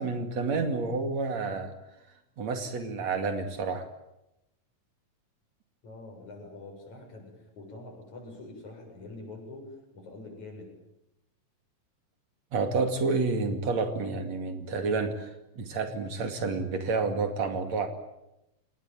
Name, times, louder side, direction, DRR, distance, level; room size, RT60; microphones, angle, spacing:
voice 1, 0.0-1.7 2.4-3.9 12.5-17.9, right 4 dB, 60° right, 6 dB, 3.5 m, -29 dB
voice 2, 5.8-10.7, left 2 dB, 65° left, 2 dB, 8.8 m, -45 dB
26.5 x 20.0 x 9.2 m, 0.88 s
omnidirectional pair, 3.6 m